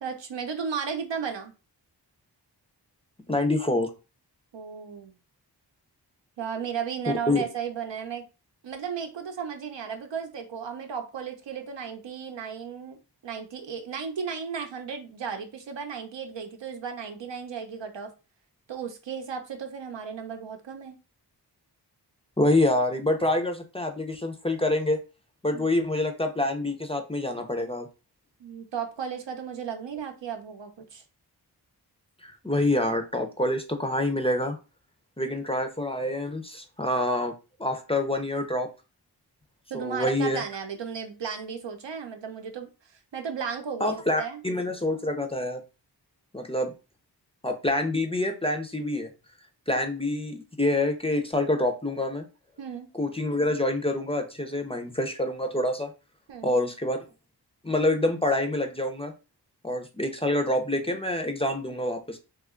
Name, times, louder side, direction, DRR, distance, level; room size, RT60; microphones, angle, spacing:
voice 1, 0.0-1.5 4.5-5.1 6.4-8.2 8.6-13.0 13.2-18.1 18.7-21.0 25.5-25.7 28.4-31.0 35.3-35.4 39.7-42.7 43.1-44.4 49.8-49.9 52.6-52.9 56.3-56.6, right 6 dB, 90° right, 5 dB, 0.7 m, -35 dB
voice 2, 3.3-3.9 7.3-7.4 22.4-25.0 25.4-27.9 32.2-34.6 35.2-37.3 37.6-38.7 39.7-40.4 43.8-45.6 46.3-46.7 47.4-49.1 49.7-52.2 52.9-55.9 56.4-57.0 57.6-59.1 59.6-62.2, left 1 dB, 15° left, 6 dB, 0.4 m, -26 dB
3.0 x 2.2 x 3.6 m, 0.31 s
wide cardioid pair, 100°, 42 cm